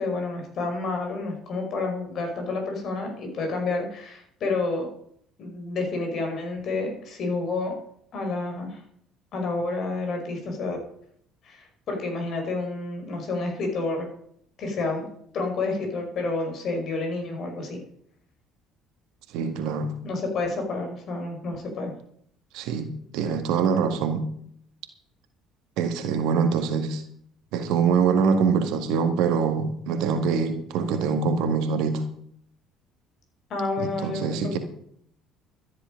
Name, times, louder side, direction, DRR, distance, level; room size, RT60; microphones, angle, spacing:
voice 1, 0.0-4.9 5.4-7.7 8.1-8.8 9.3-10.8 11.4-14.1 14.6-15.0 15.3-17.8 20.0-21.9 33.5-34.4, left 3 dB, 50° left, 3 dB, 5.3 m, -29 dB
voice 2, 19.3-19.9 22.5-22.9 23.1-24.2 25.8-27.0 27.5-32.0 33.8-34.6, right 6 dB, 65° right, 7 dB, 1.9 m, -24 dB
13.5 x 10.5 x 5.3 m, 0.65 s
hypercardioid pair, 55°, 0 cm